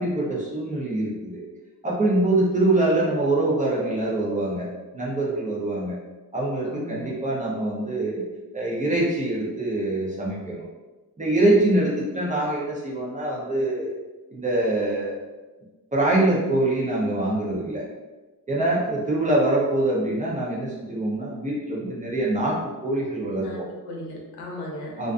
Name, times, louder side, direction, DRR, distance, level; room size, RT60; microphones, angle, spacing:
voice 1, 0.0-1.4 1.8-6.0 6.3-8.2 8.5-10.7 11.2-14.0 14.3-15.2 15.9-17.9 18.5-23.6 25.0-25.1, right 2 dB, 20° right, -5 dB, 0.5 m, -24 dB
voice 2, 6.6-7.1 23.4-24.9, left 1 dB, 80° left, -1 dB, 0.7 m, -36 dB
2.4 x 2.3 x 2.4 m, 1.2 s
wide cardioid pair, 145°, 38 cm